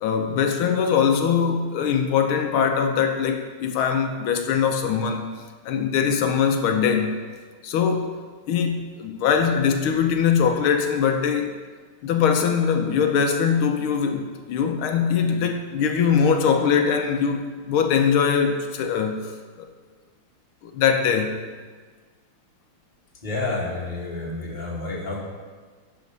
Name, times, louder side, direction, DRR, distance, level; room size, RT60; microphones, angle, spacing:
voice 1, 0.0-5.3 5.6-7.2 7.6-8.2 8.5-11.5 12.0-19.3 19.6-19.7 20.6-21.4, left 7 dB, 85° left, 4 dB, 1.6 m, -22 dB
voice 2, 23.2-25.2, left 2 dB, 25° left, -4 dB, 1.5 m, -29 dB
11.5 x 4.3 x 5.3 m, 1.5 s
omnidirectional pair, 2.3 m